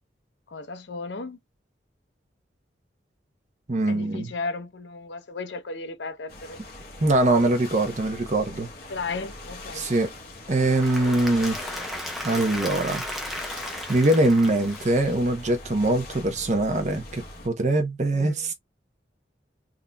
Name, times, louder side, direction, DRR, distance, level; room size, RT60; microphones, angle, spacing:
voice 1, 0.5-1.4 3.9-6.6 8.9-9.9 18.1-18.5, left 3 dB, 75° left, 0.6 m, -35 dB
voice 2, 3.7-4.3 7.0-8.7 9.7-10.1 10.5-11.6 12.2-13.0 13.9-18.5, right 2 dB, 40° right, 0.8 m, -23 dB
sound 1, 6.3-17.5, left 2 dB, 55° left, 1.0 m, -42 dB
Applause / Crowd, 10.5-15.5, equal, ahead, 0.7 m, -35 dB
3.7 x 2.8 x 2.2 m
head